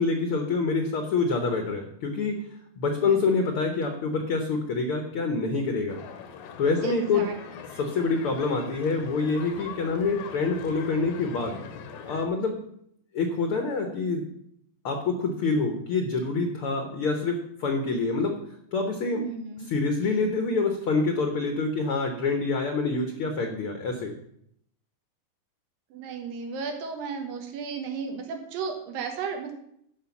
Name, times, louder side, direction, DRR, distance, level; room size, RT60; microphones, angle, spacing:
voice 1, 0.0-2.4 2.8-6.0 6.6-7.3 7.8-11.6 12.0-12.6 13.1-14.3 14.8-18.4 18.7-19.3 19.7-24.1, left 4 dB, 65° left, 5 dB, 1.3 m, -26 dB
sound 1, 5.9-12.3, left 7 dB, 85° left, 2.9 m, -42 dB
voice 2, 6.8-7.4 19.2-19.7 25.9-29.5, right 5 dB, 80° right, 4 dB, 3.2 m, -34 dB
11.5 x 5.6 x 7.1 m, 0.72 s
omnidirectional pair, 4.0 m